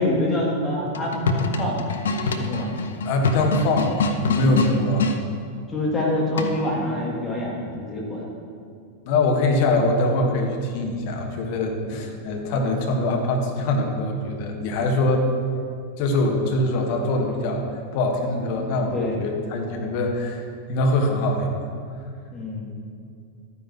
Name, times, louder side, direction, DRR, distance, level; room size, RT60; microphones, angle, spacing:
voice 1, 0.0-1.9 2.2-2.7 5.7-8.3 18.7-19.2 22.3-22.7, left 1 dB, 15° left, -4 dB, 2.6 m, -26 dB
sound 1, 0.9-5.2 6.4-6.8, left 3 dB, 65° left, 0.7 m, -25 dB
voice 2, 3.0-5.1 9.0-15.3 16.0-17.6 17.9-21.6, left 2 dB, 45° left, 2 dB, 1.5 m, -23 dB
12.5 x 9.7 x 3.0 m, 2.4 s
figure-of-eight pair, 90°, 0 cm